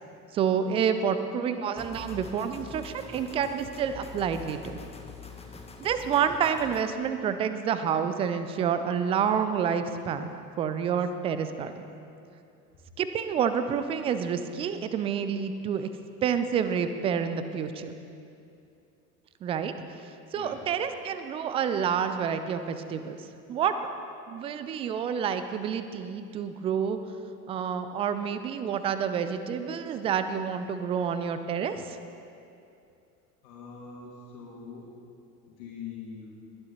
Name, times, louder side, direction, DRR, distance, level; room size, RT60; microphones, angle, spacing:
voice 1, 0.3-4.8 5.8-10.3 10.6-11.9 13.0-15.9 16.2-18.0 19.4-19.7 20.3-23.2 23.5-23.7 24.3-27.0 27.5-32.0, right 7 dB, 15° right, 10 dB, 0.3 m, -28 dB
sound 1, 1.8-6.8, left 5 dB, 10° left, 1.1 m, -45 dB
voice 2, 33.4-34.9 35.5-36.3, left 6 dB, 50° left, -4 dB, 2.6 m, -43 dB
20.5 x 11.0 x 4.2 m, 2.6 s
figure-of-eight pair, 75°, 48 cm